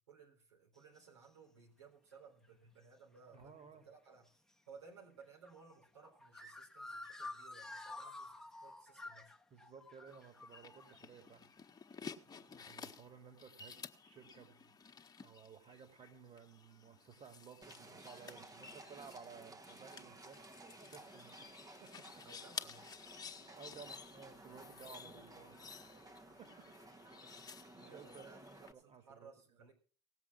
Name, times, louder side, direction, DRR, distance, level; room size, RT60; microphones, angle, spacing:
voice 1, 0.1-4.4 4.7-9.3 12.2-12.8 22.2-22.9 24.9-25.4 26.3-26.4 27.0-27.2 27.8-29.7, right 5 dB, 85° right, -1 dB, 3.8 m, -60 dB
sound 1, 0.8-1.0 2.4-2.5 3.4-3.6 4.3-4.4 5.2-11.0, left 2 dB, 5° left, 1.4 m, -50 dB
voice 2, 3.3-3.9 9.5-11.5 12.5-13.8 14.0-14.7 15.2-20.5 20.8-21.5 21.8-22.2 23.5-25.5 25.8-26.1 26.4-27.0 27.7-28.2 28.7-29.3, right 6 dB, 45° right, 6 dB, 3.1 m, -56 dB
sound 2, 10.1-28.7, left 6 dB, 25° left, 1.5 m, -54 dB
Livestock farm animals working animals, 17.6-28.7, right 2 dB, 25° right, 1.4 m, -56 dB
18.0 x 7.5 x 6.2 m, 0.39 s
hypercardioid pair, 65°, 15 cm